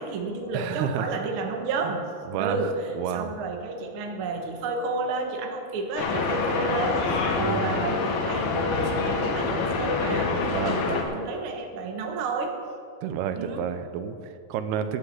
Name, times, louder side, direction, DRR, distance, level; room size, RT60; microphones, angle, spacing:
voice 1, 0.0-2.0 2.4-12.6 13.3-13.7, right 3 dB, 60° right, 3 dB, 1.4 m, -31 dB
voice 2, 0.5-1.1 1.8-1.9 2.3-2.6 3.0-3.4 7.4-7.9 10.5-11.1 13.0-15.0, right 8 dB, 90° right, 10 dB, 2.8 m, -30 dB
sound 1, 6.0-11.0, left 4 dB, 80° left, 3.3 m, -26 dB
12.0 x 8.7 x 8.0 m, 2.4 s
omnidirectional pair, 4.4 m